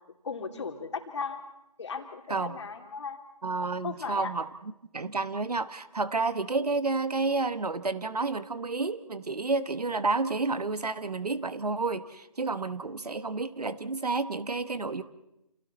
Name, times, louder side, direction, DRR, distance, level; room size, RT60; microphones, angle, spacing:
voice 1, 0.2-1.4 1.8-3.2 3.8-4.3 12.8-13.2, left 5 dB, 45° left, 4 dB, 3.0 m, -37 dB
voice 2, 2.3-2.6 3.4-4.5 4.9-15.0, right 3 dB, 70° right, 14 dB, 1.3 m, -30 dB
29.5 x 28.0 x 4.2 m, 0.88 s
figure-of-eight pair, 155°, 20 cm